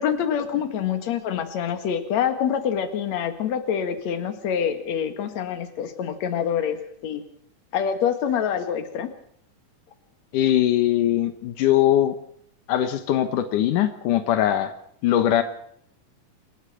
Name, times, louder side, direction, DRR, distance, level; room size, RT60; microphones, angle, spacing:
voice 1, 0.0-7.2 7.7-9.1, left 8 dB, 65° left, 8 dB, 2.9 m, -26 dB
voice 2, 10.3-12.2 12.7-14.7 15.0-15.4, left 12 dB, 85° left, 9 dB, 2.8 m, -21 dB
27.5 x 12.5 x 7.6 m, 0.66 s
omnidirectional pair, 3.6 m